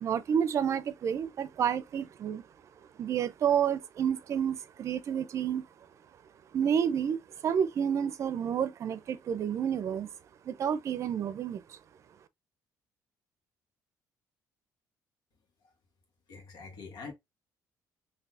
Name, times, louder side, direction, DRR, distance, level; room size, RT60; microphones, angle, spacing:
voice 1, 0.0-2.4 3.0-5.7 6.5-7.2 7.4-10.1 10.5-11.8, right 8 dB, 45° right, 0.5 m, -30 dB
voice 2, 16.3-17.1, left 4 dB, 80° left, 1.4 m, -44 dB
3.9 x 2.7 x 2.6 m
cardioid pair, 120°, 7 cm